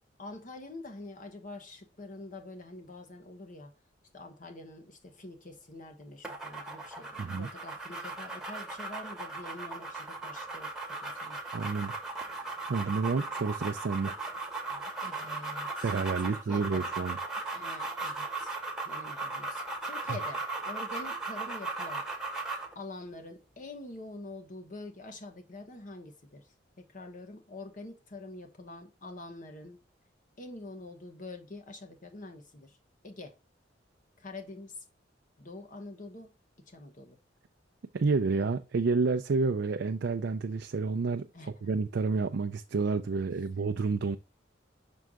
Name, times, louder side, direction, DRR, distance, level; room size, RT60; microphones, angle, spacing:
voice 1, 0.2-3.7 4.1-10.7 11.0-11.4 14.7-16.9 17.5-18.6 18.8-22.1 22.7-29.8 30.4-32.8 33.0-33.4 34.2-34.8 35.4-36.3 36.7-37.2 41.3-41.7, left 2 dB, 45° left, 1.1 m, -46 dB
sound 1, 6.2-22.7, right 3 dB, 5° right, 1.2 m, -37 dB
voice 2, 7.2-7.5 11.5-12.0 12.2-14.2 15.8-17.2 37.9-41.3 41.6-44.2, right 4 dB, 60° right, 0.4 m, -30 dB
6.1 x 4.6 x 3.6 m
head